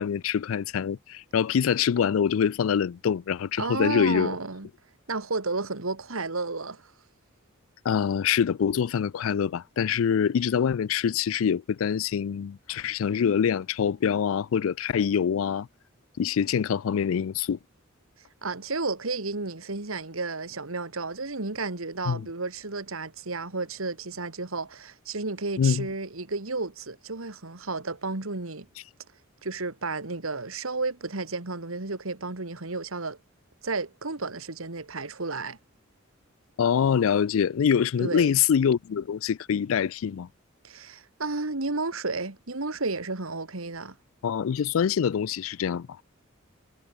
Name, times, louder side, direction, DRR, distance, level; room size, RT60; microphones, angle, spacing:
voice 1, 0.0-4.4 7.8-15.7 16.2-17.6 22.1-22.3 25.6-25.9 36.6-40.3 44.2-46.0, left 7 dB, 80° left, 0.4 m, -25 dB
voice 2, 3.6-4.7 5.1-6.8 18.4-28.7 29.4-33.2 33.6-35.6 38.0-38.3 40.6-44.0, right 3 dB, 90° right, 2.1 m, -32 dB
head